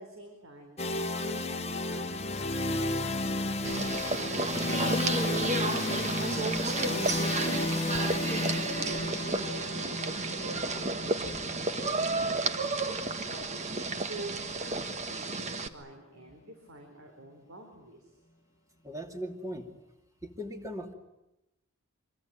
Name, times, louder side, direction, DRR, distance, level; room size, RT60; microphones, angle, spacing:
voice 1, 0.0-3.7 8.6-13.6 14.1-18.2, right 2 dB, 65° right, 4 dB, 4.0 m, -48 dB
sound 1, 0.8-14.6, left 2 dB, 30° left, 1.3 m, -33 dB
sound 2, 3.6-15.7, right 3 dB, 30° right, 1.4 m, -32 dB
voice 2, 18.8-19.7 20.2-20.9, equal, 15° right, 4 dB, 2.6 m, -38 dB
25.0 x 24.0 x 9.4 m, 0.92 s
head